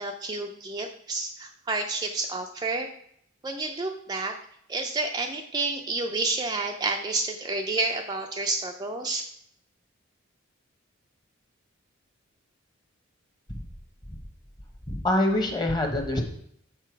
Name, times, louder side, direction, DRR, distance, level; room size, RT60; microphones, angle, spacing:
voice 1, 0.0-2.9 3.4-4.3 4.7-9.2, right 3 dB, 20° right, 3 dB, 0.4 m, -30 dB
voice 2, 14.9-16.2, left 1 dB, 20° left, 4 dB, 1.0 m, -25 dB
6.8 x 5.4 x 4.5 m, 0.68 s
head